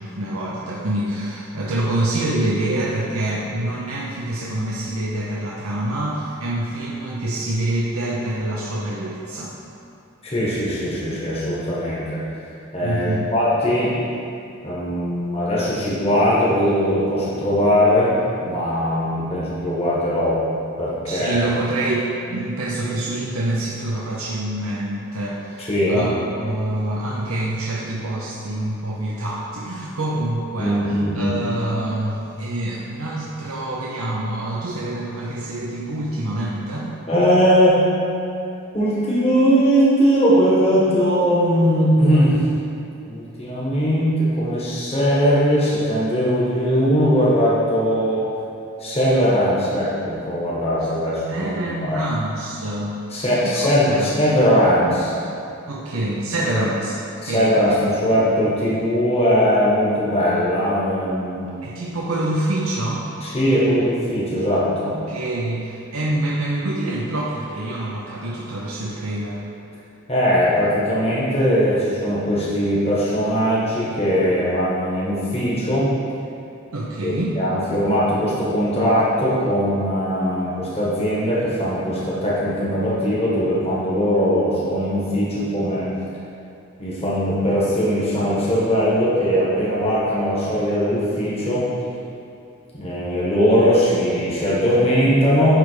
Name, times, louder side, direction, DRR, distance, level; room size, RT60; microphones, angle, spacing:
voice 1, 0.0-9.5 12.8-13.3 21.1-26.1 26.4-36.9 51.3-53.0 53.3-54.1 55.7-57.0 57.3-57.8 61.6-63.1 64.8-69.4 76.7-77.4, right 1 dB, 90° right, -5 dB, 0.8 m, -26 dB
voice 2, 10.2-12.2 12.7-13.9 14.6-20.4 20.8-21.4 25.7-26.0 30.6-31.3 37.1-37.8 38.7-42.4 43.0-48.3 48.8-52.0 53.1-55.1 56.5-56.6 57.2-61.5 63.2-64.9 70.1-75.9 77.0-85.9 86.8-91.6 92.7-95.6, equal, 30° left, -8 dB, 1.5 m, -20 dB
10.5 x 3.5 x 5.0 m, 2.6 s
head